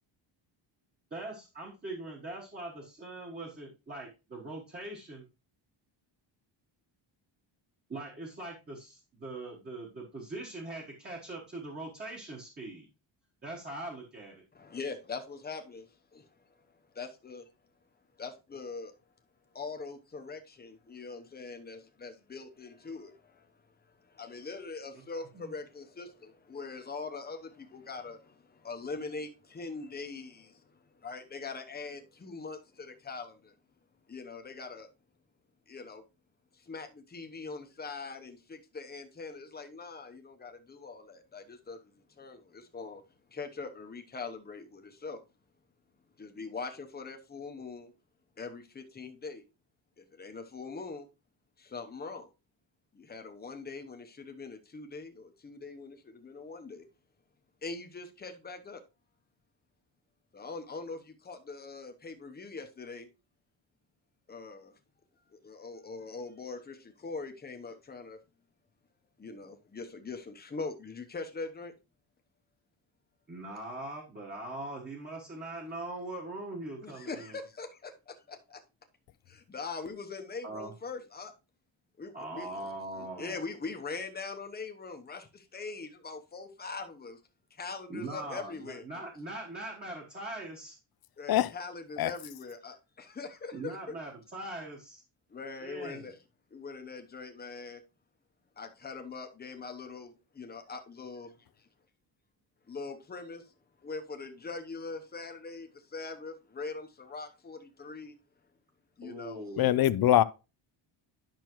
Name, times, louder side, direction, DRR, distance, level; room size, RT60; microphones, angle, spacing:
voice 1, 1.1-5.3 7.9-12.9 13.4-14.4 25.3-25.5 73.3-77.4 80.4-80.7 82.1-83.4 87.9-90.8 93.5-95.0 95.6-96.1 109.0-110.0, right 2 dB, 20° right, 1.3 m, -41 dB
voice 2, 14.5-16.6 16.9-17.5 18.2-18.9 19.5-23.5 24.0-33.5 34.1-34.9 35.7-36.0 36.5-43.0 43.3-45.2 46.2-47.9 48.4-49.4 50.0-51.1 51.6-52.3 52.9-56.8 57.6-58.8 60.3-63.1 64.3-64.7 65.3-68.2 69.2-71.7 76.8-78.6 79.3-81.3 82.0-87.2 87.5-88.8 91.2-94.0 95.3-96.2 96.5-97.8 98.6-101.7 102.7-103.5 103.8-108.1 109.0-109.4, left 4 dB, 20° left, 0.9 m, -42 dB
voice 3, 109.6-110.2, left 13 dB, 50° left, 0.5 m, -23 dB
10.5 x 6.0 x 3.0 m
wide cardioid pair, 180°, 47 cm